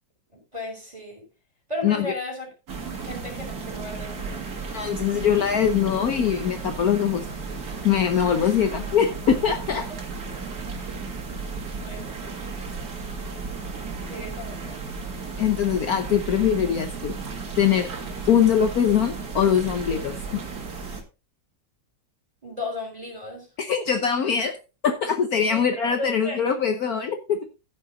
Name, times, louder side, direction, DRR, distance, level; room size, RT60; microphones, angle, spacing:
voice 1, 0.3-1.2 1.7-2.5 2.8-4.5 8.4-8.5 11.8-12.1 14.1-14.6 22.4-23.5 25.5-26.4, left 2 dB, 20° right, 5.6 m, -35 dB
sound 1, 2.7-21.0, right 4 dB, 55° right, 2.4 m, -34 dB
voice 2, 4.7-7.3 7.8-9.9 15.4-17.2 17.6-17.9 18.3-20.4 23.6-24.5 24.8-27.4, left 8 dB, 60° left, 1.3 m, -22 dB
15.0 x 6.0 x 3.8 m
omnidirectional pair, 2.0 m